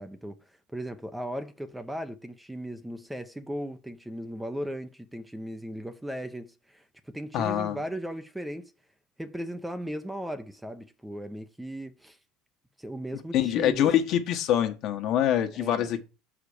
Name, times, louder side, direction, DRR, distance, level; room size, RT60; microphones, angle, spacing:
voice 1, 0.0-8.7 9.2-12.2 12.8-13.9 15.5-15.9, equal, 5° right, 0.8 m, -37 dB
voice 2, 7.3-7.8 13.3-16.0, left 10 dB, 55° left, 1.4 m, -25 dB
6.7 x 5.0 x 6.6 m
supercardioid pair, 110°, 0 cm